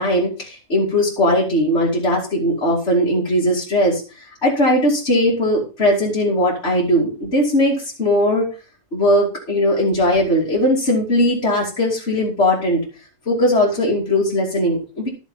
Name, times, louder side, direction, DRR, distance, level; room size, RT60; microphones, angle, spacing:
voice 1, 0.0-8.4 8.9-12.8 13.3-15.1, left 1 dB, 40° left, -6 dB, 3.2 m, -19 dB
12.5 x 7.0 x 5.7 m, 0.34 s
omnidirectional pair, 1.7 m